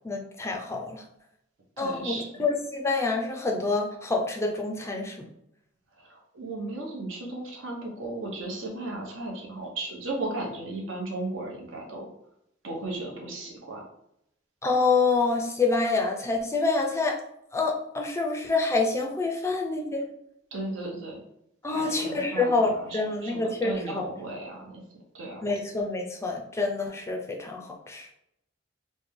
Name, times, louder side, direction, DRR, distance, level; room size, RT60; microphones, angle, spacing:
voice 1, 0.0-1.0 1.8-5.2 14.6-17.2 17.5-20.0 21.6-24.0 25.4-28.1, left 3 dB, 15° left, 2 dB, 0.4 m, -27 dB
voice 2, 1.8-2.4 6.0-12.1 12.6-13.8 20.5-21.2 21.6-24.8 25.1-25.5, right 2 dB, 75° right, -1 dB, 0.9 m, -36 dB
3.2 x 2.1 x 3.6 m, 0.79 s
head